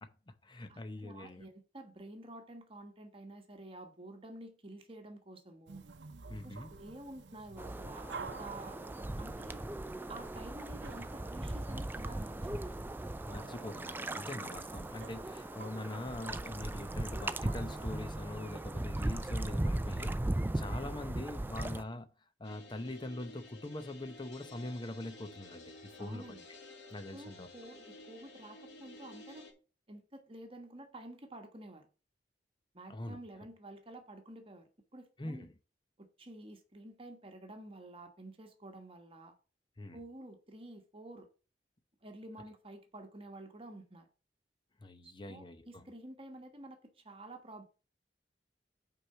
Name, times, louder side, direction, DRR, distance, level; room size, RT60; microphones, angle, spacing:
voice 1, 0.0-1.4 6.3-6.7 13.3-20.2 20.5-22.1 22.4-26.4 26.9-27.5 32.9-33.2 35.2-35.5 39.8-40.0 44.8-45.8, left 1 dB, 25° left, 0.8 m, -43 dB
voice 2, 0.7-5.8 6.4-8.8 9.2-9.6 10.1-12.8 26.0-26.4 27.1-29.5 29.9-31.9 32.7-35.5 36.0-39.3 39.9-41.3 42.0-44.1 45.0-47.6, right 1 dB, 30° right, 1.3 m, -50 dB
sound 1, 5.7-18.0, right 4 dB, 85° right, 0.7 m, -52 dB
sound 2, 7.6-21.8, right 1 dB, 10° right, 0.4 m, -38 dB
sound 3, 22.4-29.5, left 2 dB, 80° left, 2.8 m, -53 dB
6.1 x 4.8 x 6.7 m
head